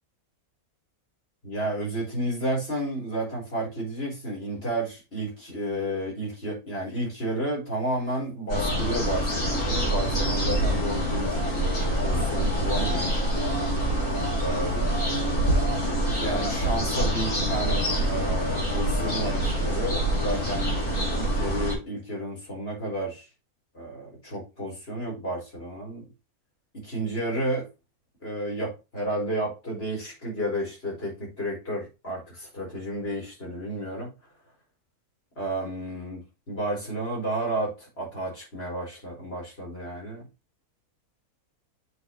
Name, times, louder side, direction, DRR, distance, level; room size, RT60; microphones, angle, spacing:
voice 1, 1.4-13.2 14.4-15.3 15.7-23.2 23.7-26.1 26.7-27.7 28.2-34.1 35.4-36.2 36.5-40.3, right 1 dB, 40° left, -3 dB, 4.7 m, -32 dB
sound 1, 8.5-21.7, right 1 dB, 60° left, 3.6 m, -26 dB
8.0 x 5.1 x 3.2 m, 0.27 s
omnidirectional pair, 1.5 m